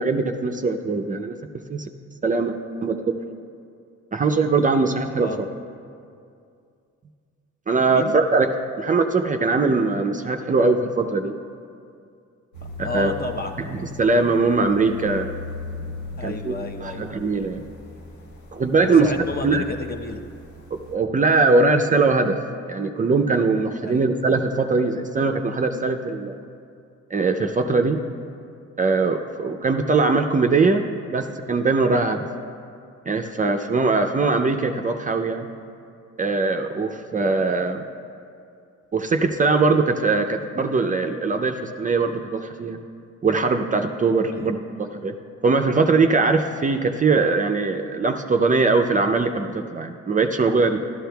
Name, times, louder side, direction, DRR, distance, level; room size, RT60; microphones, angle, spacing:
voice 1, 0.0-1.4 1.7-1.9 2.2-3.1 4.1-5.3 7.7-8.5 8.8-11.3 12.8-13.1 13.8-15.3 16.2-16.5 16.8-17.6 18.5-19.1 19.4-19.6 20.7-22.4 22.7-26.4 27.1-28.0 28.8-32.3 33.1-35.5 36.2-37.9 38.9-42.8 43.2-45.1 45.4-50.8, right 3 dB, 25° right, 5 dB, 0.5 m, -21 dB
sound 1, 12.5-21.0, left 3 dB, 75° left, 1.4 m, -38 dB
voice 2, 12.8-13.6 16.2-17.1 18.8-20.2 23.8-24.1 44.3-44.5, left 2 dB, 30° left, 4 dB, 0.8 m, -31 dB
13.0 x 12.0 x 2.3 m, 2.4 s
cardioid pair, 90°, 30 cm